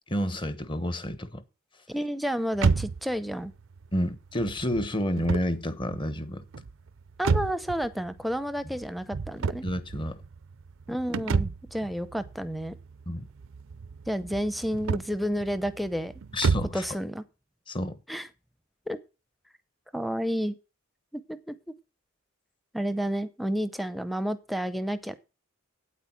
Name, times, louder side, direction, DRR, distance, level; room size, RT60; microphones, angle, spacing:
voice 1, 0.1-1.4 3.9-6.5 9.6-10.2 13.1-13.3 16.3-16.8 17.7-18.0, equal, 25° left, 1.0 m, -30 dB
voice 2, 1.9-3.5 7.2-9.6 10.9-12.7 14.1-16.1 16.7-17.2 18.1-18.3 18.9-19.0 19.9-20.6 21.1-21.5 22.7-25.2, equal, ahead, 0.7 m, -30 dB
sound 1, 2.5-16.9, right 5 dB, 65° right, 0.5 m, -32 dB
9.0 x 8.3 x 5.9 m
head